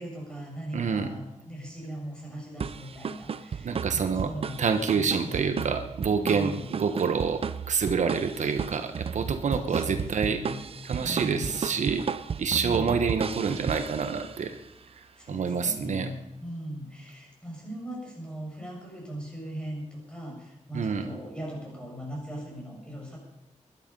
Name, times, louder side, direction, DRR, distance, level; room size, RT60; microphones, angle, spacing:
voice 1, 0.0-4.6 4.9-6.7 9.7-10.6 11.0-11.6 12.5-13.0 15.1-23.2, right 1 dB, 10° left, -2 dB, 6.7 m, -39 dB
voice 2, 0.7-1.1 3.6-4.3 4.6-10.4 10.8-12.0 12.4-14.6 15.3-16.1 20.7-21.1, right 5 dB, 80° right, 7 dB, 1.2 m, -27 dB
sound 1, 2.6-14.5, right 6 dB, 50° right, 0.6 m, -34 dB
21.0 x 12.0 x 5.4 m, 0.93 s
wide cardioid pair, 155°, 12 cm